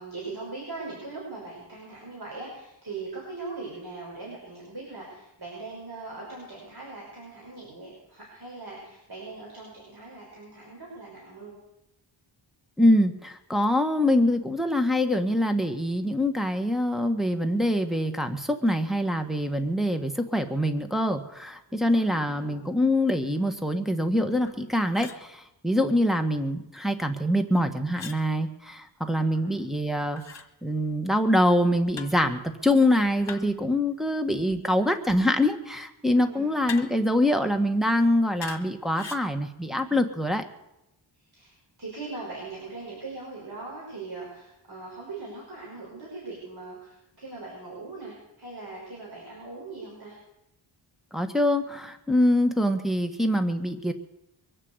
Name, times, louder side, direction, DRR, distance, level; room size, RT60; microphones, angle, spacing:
voice 1, 0.0-11.5 21.8-22.6 29.1-29.5 36.1-36.5 41.3-50.2, right 3 dB, 50° right, -5 dB, 5.7 m, -40 dB
voice 2, 12.8-30.2 30.6-40.4 51.1-53.9, left 1 dB, ahead, 4 dB, 1.6 m, -24 dB
sound 1, 24.4-24.6 24.9-25.2 27.9-28.2 30.2-30.5 31.9-32.2 33.3-33.6 36.7-37.1 38.4-38.7 38.9-39.3, left 6 dB, 65° left, 1.6 m, -40 dB
23.0 x 7.6 x 8.1 m, 0.89 s
wide cardioid pair, 75°, 48 cm